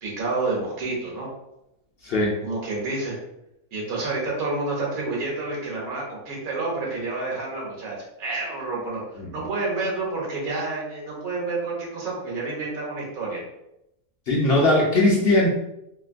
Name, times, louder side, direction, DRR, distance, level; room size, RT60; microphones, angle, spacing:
voice 1, 0.0-1.3 2.4-3.1 3.7-13.4, right 3 dB, 80° right, -3 dB, 1.3 m, -29 dB
voice 2, 2.0-2.4 9.2-9.3 14.3-15.5, left 2 dB, 60° left, -3 dB, 0.6 m, -19 dB
2.9 x 2.5 x 2.4 m, 0.85 s
omnidirectional pair, 1.5 m